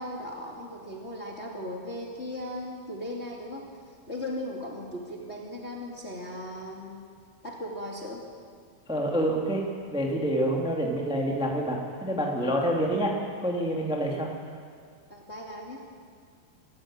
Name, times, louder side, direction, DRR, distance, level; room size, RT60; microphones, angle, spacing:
voice 1, 0.0-3.7 4.1-7.1 7.4-8.2 15.1-15.8, left 1 dB, 20° left, -2 dB, 2.1 m, -37 dB
voice 2, 8.9-9.6 9.9-13.1 13.4-14.3, right 1 dB, ahead, -1 dB, 1.7 m, -27 dB
25.5 x 14.0 x 9.0 m, 2.1 s
omnidirectional pair, 4.4 m